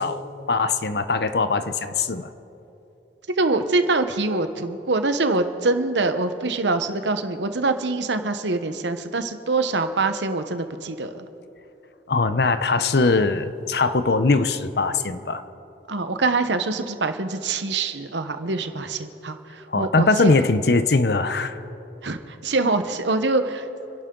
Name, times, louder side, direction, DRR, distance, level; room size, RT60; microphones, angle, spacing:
voice 1, 0.0-2.3 12.1-15.4 19.7-21.6, left 3 dB, 60° left, 11 dB, 0.7 m, -21 dB
voice 2, 3.4-11.2 15.9-19.4 19.8-20.3 22.0-22.2 22.4-23.6, right 3 dB, 85° right, 9 dB, 1.0 m, -24 dB
29.5 x 11.5 x 3.9 m, 3.0 s
head